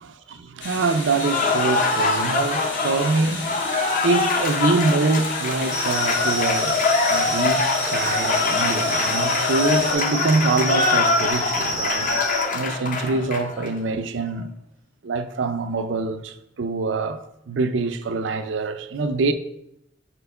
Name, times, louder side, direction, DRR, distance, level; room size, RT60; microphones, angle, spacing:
voice 1, 0.0-12.2 12.5-14.5 15.0-19.3, right 3 dB, 75° right, 0.5 m, -25 dB
sound 1, 0.6-9.9, left 3 dB, 65° left, 1.4 m, -33 dB
Cheering / Applause, 1.1-13.7, left 4 dB, 45° left, 0.7 m, -23 dB
sound 2, 5.7-12.4, equal, 90° left, 2.0 m, -30 dB
4.4 x 4.3 x 5.4 m
head